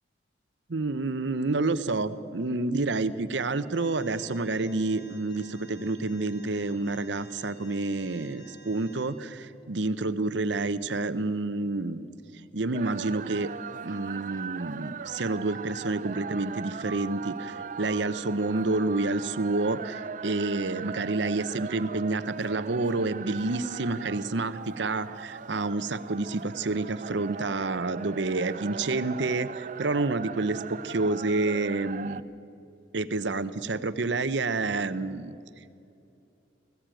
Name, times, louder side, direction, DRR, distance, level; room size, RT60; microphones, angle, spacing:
voice 1, 0.7-12.1 12.5-13.5 13.8-32.2 32.9-35.4, right 3 dB, 65° right, 13 dB, 0.8 m, -29 dB
Alarm, 3.7-9.0, right 1 dB, 60° left, 6.8 m, -52 dB
sound 1, 12.7-32.2, right 6 dB, 40° right, 0.5 m, -39 dB
19.5 x 15.5 x 9.0 m, 2.7 s
head